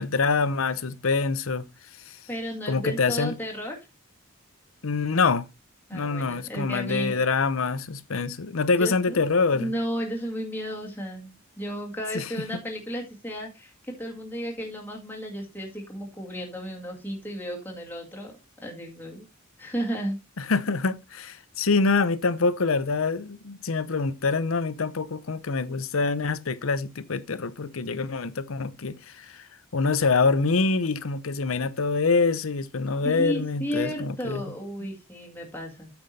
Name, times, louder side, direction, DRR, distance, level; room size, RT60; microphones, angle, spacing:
voice 1, 0.0-1.6 2.1-2.2 2.7-3.3 4.8-5.5 5.9-9.7 12.1-12.4 20.4-29.5 29.7-34.4, left 4 dB, 85° left, 0.8 m, -25 dB
voice 2, 2.3-3.8 5.9-7.2 8.8-9.2 9.5-18.3 18.6-19.2 19.6-20.2 33.0-35.9, equal, 10° left, 2.0 m, -33 dB
8.7 x 6.0 x 4.1 m
head